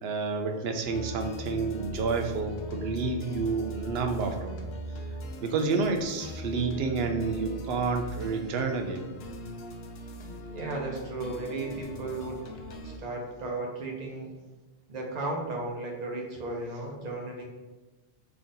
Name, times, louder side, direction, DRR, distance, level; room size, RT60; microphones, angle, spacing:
voice 1, 0.0-4.7 5.4-9.1, right 4 dB, 75° right, 5 dB, 0.8 m, -29 dB
sound 1, 0.8-13.0, left 1 dB, 75° left, 0.8 m, -40 dB
voice 2, 10.5-12.4 12.8-14.3 14.9-17.4, right 2 dB, 45° right, -1 dB, 0.9 m, -35 dB
3.8 x 3.4 x 3.9 m, 1.1 s
omnidirectional pair, 1.1 m